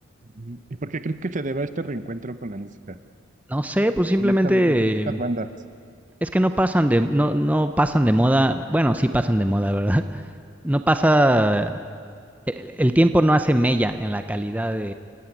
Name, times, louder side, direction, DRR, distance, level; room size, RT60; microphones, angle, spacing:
voice 1, 0.3-3.0 4.2-5.5, right 2 dB, 40° right, 11 dB, 0.8 m, -30 dB
voice 2, 3.5-5.2 6.2-10.2 10.6-11.8 12.5-14.9, right 1 dB, 10° right, 9 dB, 0.7 m, -20 dB
29.5 x 16.0 x 9.3 m, 2.2 s
head